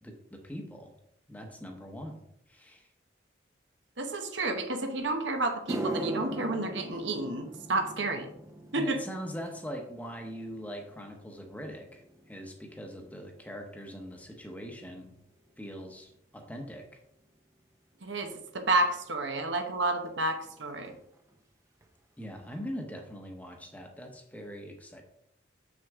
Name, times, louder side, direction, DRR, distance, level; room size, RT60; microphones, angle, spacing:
voice 1, 0.0-0.9 1.3-2.9 8.7-15.1 15.6-16.9 22.2-25.0, equal, 10° left, 2 dB, 0.9 m, -42 dB
voice 2, 4.0-8.3 8.7-9.0 18.0-20.9, right 2 dB, 75° right, 6 dB, 1.0 m, -30 dB
sound 1, 5.0-5.1 5.5-14.0 14.3-14.7 15.5-15.6 18.3-18.4 20.1-20.2 20.3-20.6 20.8-21.4 21.8-21.9 22.4-22.5, right 2 dB, 15° right, 0.6 m, -41 dB
7.1 x 6.2 x 3.6 m, 0.75 s
head